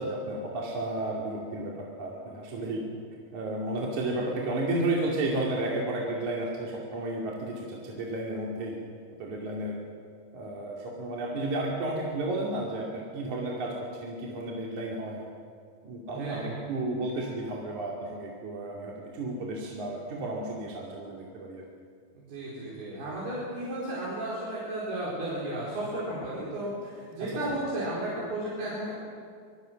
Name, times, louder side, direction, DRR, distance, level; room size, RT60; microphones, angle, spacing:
voice 1, 0.0-2.9 3.3-8.8 9.2-9.8 10.3-15.3 15.8-21.6 27.2-27.4, right 2 dB, 50° right, -3 dB, 3.7 m, -32 dB
voice 2, 16.1-16.6 22.2-28.9, right 1 dB, 75° right, -7 dB, 6.5 m, -34 dB
26.5 x 22.5 x 6.4 m, 2.2 s
omnidirectional pair, 4.6 m